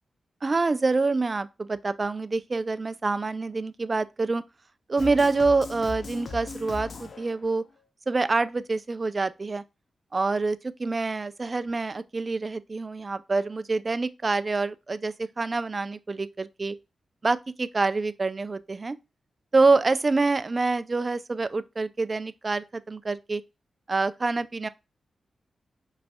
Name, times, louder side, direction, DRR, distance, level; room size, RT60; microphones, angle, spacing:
voice 1, 0.4-4.4 4.9-7.6 8.1-9.6 10.1-16.7 17.2-19.0 19.5-23.4 23.9-24.7, right 3 dB, 40° right, 0.4 m, -26 dB
sound 1, 5.0-7.6, left 4 dB, 60° left, 0.6 m, -38 dB
5.1 x 3.2 x 2.3 m
cardioid pair, 55°, 0 cm